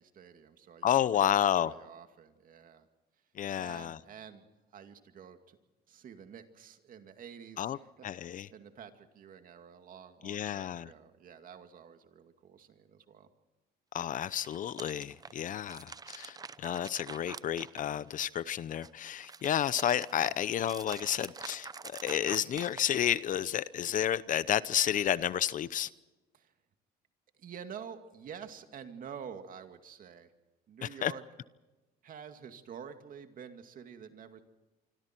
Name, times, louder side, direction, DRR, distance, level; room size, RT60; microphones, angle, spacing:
voice 1, 0.0-2.9 3.5-4.4 4.7-5.6 5.9-13.3 26.3-26.5 27.4-30.3 30.7-31.2 32.0-34.4, right 7 dB, 55° right, 2.3 m, -49 dB
voice 2, 0.8-1.7 3.4-4.0 7.6-7.8 8.0-8.5 10.2-10.9 13.9-21.7 22.0-25.9 30.8-31.1, left 10 dB, 50° left, 0.8 m, -31 dB
sound 1, 14.3-18.3 18.7-23.3, right 5 dB, 20° right, 0.7 m, -46 dB
26.0 x 26.0 x 4.6 m
cardioid pair, 110°, 17 cm